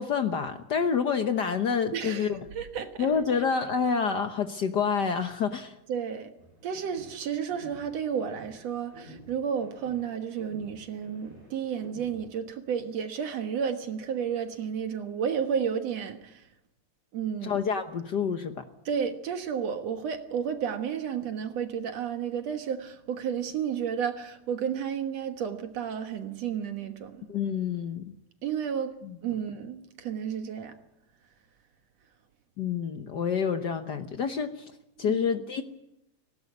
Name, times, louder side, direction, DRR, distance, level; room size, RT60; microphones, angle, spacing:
voice 1, 0.0-2.4 3.0-5.7 17.4-18.6 27.3-28.1 29.0-29.2 32.6-34.7 35.0-35.6, left 6 dB, 70° left, 1.0 m, -28 dB
voice 2, 1.9-3.1 5.9-6.3 6.6-16.5 17.1-17.6 18.9-27.3 28.4-28.9 29.2-30.7 35.0-35.2, right 7 dB, 65° right, 2.5 m, -32 dB
sound 1, 6.4-12.4, equal, 30° right, 7.5 m, -51 dB
18.5 x 17.5 x 9.4 m
omnidirectional pair, 3.3 m